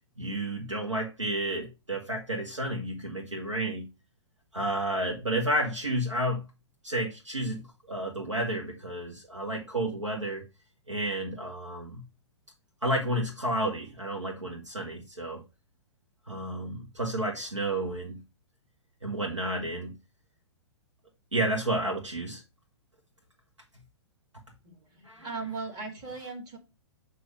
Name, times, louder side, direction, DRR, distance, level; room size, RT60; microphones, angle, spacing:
voice 1, 0.2-3.9 4.5-6.5 6.8-10.4 10.9-12.0 12.8-15.4 16.3-18.2 19.0-20.0 21.3-22.4 25.0-25.3, right 1 dB, 85° right, 1.2 m, -31 dB
voice 2, 24.6-26.6, right 4 dB, 25° right, 1.7 m, -38 dB
7.8 x 2.7 x 4.9 m
figure-of-eight pair, 115°, 15 cm